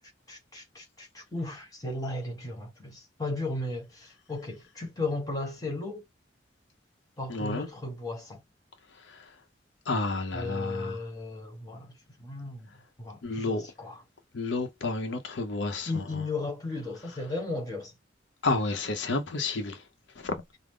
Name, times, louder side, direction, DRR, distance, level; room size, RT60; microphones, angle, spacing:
voice 1, 0.3-6.0 7.2-8.4 10.3-12.7 13.0-14.0 15.9-17.9, left 2 dB, 20° left, 1.3 m, -35 dB
voice 2, 7.3-7.7 9.0-9.3 9.9-11.0 13.2-13.7 14.3-16.2 18.4-19.8 20.2-20.4, left 3 dB, 75° left, 0.7 m, -31 dB
4.9 x 2.0 x 3.6 m
head